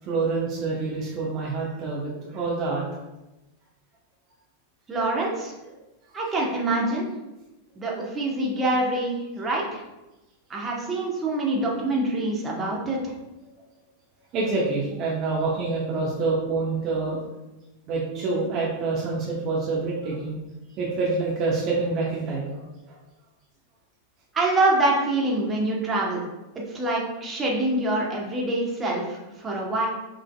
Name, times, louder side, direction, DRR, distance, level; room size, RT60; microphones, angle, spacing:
voice 1, 0.0-2.8 14.3-17.2 17.9-20.4 20.8-22.6, right 3 dB, 40° right, -5 dB, 0.9 m, -26 dB
voice 2, 4.9-5.5 6.1-7.0 7.8-9.8 10.5-13.1 24.3-26.2 26.7-29.9, right 2 dB, 20° right, -3 dB, 1.2 m, -25 dB
6.1 x 3.1 x 2.3 m, 1.0 s
figure-of-eight pair, 90°, 0 cm